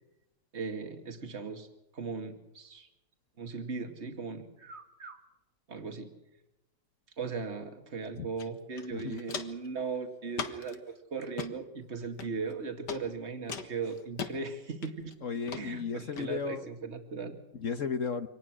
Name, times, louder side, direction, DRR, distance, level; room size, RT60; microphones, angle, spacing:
voice 1, 0.5-1.7 1.9-2.9 3.4-5.2 5.7-6.1 7.2-10.8 11.1-15.1 15.6-17.4, right 4 dB, 40° right, 5 dB, 2.5 m, -38 dB
Walk footsteps, 8.4-8.5 8.8-9.7 10.3-10.8 11.2-11.5 12.2-12.5 12.9-13.0 13.5-14.3 14.8-15.1 15.5-15.6 16.2-16.3, left 6 dB, 80° left, 2.2 m, -38 dB
voice 2, 8.9-9.3 15.2-16.6 17.5-18.3, left 6 dB, 50° left, 9 dB, 1.3 m, -34 dB
26.0 x 20.0 x 6.3 m, 0.91 s
omnidirectional pair, 1.8 m